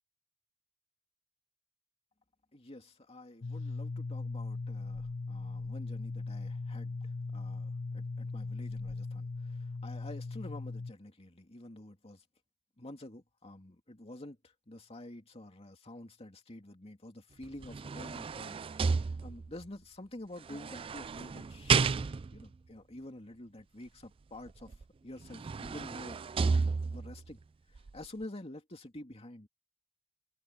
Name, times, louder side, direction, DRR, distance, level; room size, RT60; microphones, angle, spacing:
voice 1, 2.5-12.2 12.8-24.8 25.0-27.4 27.7-29.5, left 1 dB, 30° left, 2.6 m, -48 dB
sound 1, 3.4-10.9, left 3 dB, 65° left, 0.8 m, -39 dB
sound 2, 17.4-19.6 20.5-22.5 24.7-24.8 25.2-27.2 27.8-27.9, right 5 dB, 25° right, 0.3 m, -32 dB
open air
head